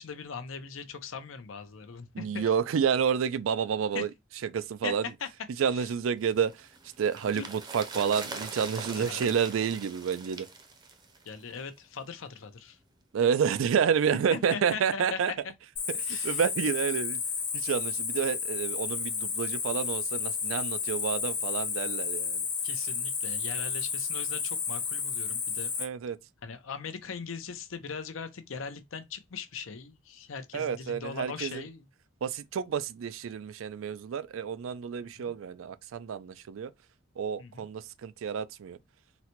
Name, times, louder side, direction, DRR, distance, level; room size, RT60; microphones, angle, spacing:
voice 1, 0.0-2.5 3.9-4.0 4.8-4.9 5.2-5.3 5.7-5.9 7.3-7.5 8.9-9.3 11.3-12.8 14.1-15.2 16.0-16.4 22.6-25.7 26.4-31.9 35.2-35.3 37.4-37.7, left 5 dB, 90° left, 0.6 m, -40 dB
voice 2, 2.1-4.1 4.5-5.0 5.6-6.7 7.0-10.5 13.1-15.3 15.9-17.2 17.5-22.5 25.8-26.2 30.5-31.6 32.2-36.7 37.2-38.8, right 7 dB, 85° right, 0.4 m, -29 dB
sound 1, 6.3-11.7 12.0-12.1, right 3 dB, 20° right, 0.6 m, -42 dB
Cricket, 15.8-25.8, left 6 dB, 40° left, 0.8 m, -32 dB
4.0 x 2.1 x 2.8 m
head